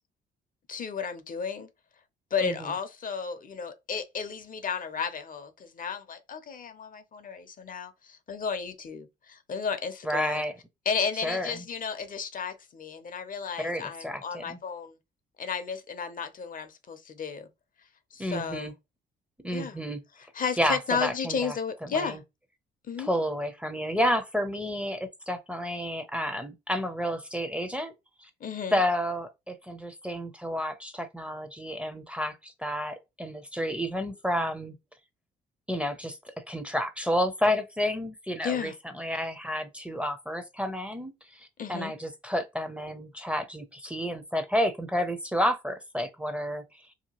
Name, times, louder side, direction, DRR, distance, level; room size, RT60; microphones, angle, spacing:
voice 1, 0.7-1.7 2.3-10.4 10.9-14.9 15.4-17.5 18.1-18.7 19.5-19.8 20.3-22.2 22.9-23.1 28.4-28.8 38.4-38.7 41.6-41.9, left 6 dB, 45° left, 0.6 m, -33 dB
voice 2, 2.4-2.7 10.0-10.5 11.2-11.6 13.6-14.6 18.2-18.7 19.4-20.0 20.6-21.6 21.8-22.2 23.0-27.9 28.2-28.3 28.7-34.8 35.7-46.8, equal, 5° right, 0.6 m, -30 dB
2.8 x 2.2 x 2.9 m
supercardioid pair, 70°, 20 cm